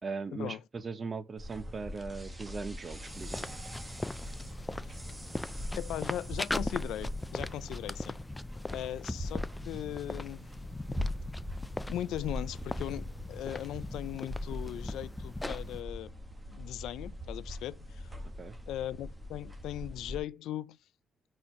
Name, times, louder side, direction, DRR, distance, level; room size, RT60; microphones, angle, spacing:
voice 1, 0.0-3.5 18.4-18.6, right 4 dB, 35° right, 0.7 m, -39 dB
sound 1, 1.4-20.2, left 1 dB, 15° right, 1.2 m, -41 dB
sound 2, 3.1-15.8, left 2 dB, 15° left, 0.4 m, -40 dB
voice 2, 5.8-8.2 8.7-10.5 11.9-16.1 16.5-18.1 18.7-20.8, left 12 dB, 85° left, 0.4 m, -39 dB
4.3 x 4.3 x 5.7 m
cardioid pair, 90°, 0 cm